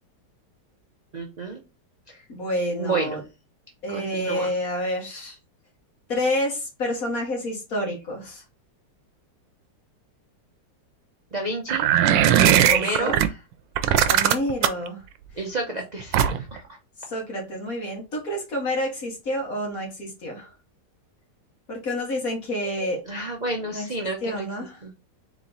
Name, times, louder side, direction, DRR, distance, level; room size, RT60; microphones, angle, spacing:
voice 1, 1.1-1.6 2.1-2.2 2.8-3.2 3.9-4.5 11.3-11.9 12.7-13.2 15.3-16.8 23.1-24.5 24.8-24.9, right 2 dB, 50° right, 1 dB, 0.5 m, -30 dB
voice 2, 2.3-3.2 3.8-5.4 6.1-8.4 12.6-13.2 14.0-15.0 17.1-20.5 21.7-23.0 23.7-23.8 24.2-24.8, left 1 dB, 50° left, 0 dB, 2.1 m, -28 dB
sound 1, 11.7-13.3 13.8-14.9 16.1-16.6, right 10 dB, 90° right, 1.3 m, -18 dB
4.2 x 3.0 x 3.9 m, 0.27 s
omnidirectional pair, 1.9 m